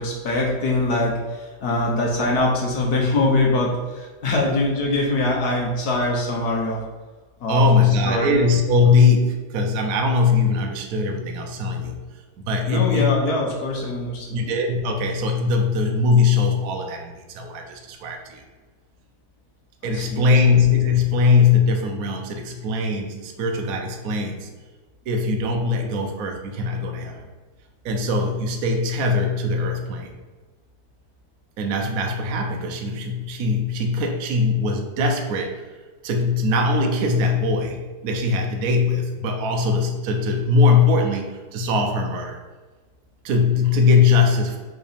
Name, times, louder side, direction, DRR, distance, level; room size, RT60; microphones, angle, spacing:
voice 1, 0.0-6.8 7.4-8.4 12.7-14.4 19.8-20.3, left 2 dB, 55° left, -1 dB, 1.4 m, -23 dB
voice 2, 7.5-12.0 12.4-13.2 14.3-18.4 19.8-24.5 25.1-27.3 27.8-30.1 31.6-35.6 36.0-42.4 43.2-44.6, left 4 dB, 60° right, 2 dB, 0.9 m, -21 dB
5.0 x 3.9 x 5.0 m, 1.3 s
omnidirectional pair, 2.3 m